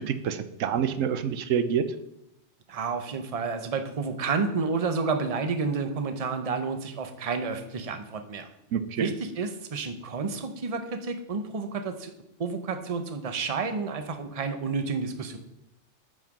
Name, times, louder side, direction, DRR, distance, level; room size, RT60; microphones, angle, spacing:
voice 1, 0.0-1.9 8.7-9.1, right 8 dB, 85° right, 12 dB, 1.0 m, -27 dB
voice 2, 2.7-8.5 9.0-12.1 12.4-15.4, right 4 dB, 35° right, 8 dB, 0.8 m, -30 dB
9.0 x 5.2 x 6.0 m, 0.84 s
omnidirectional pair, 1.3 m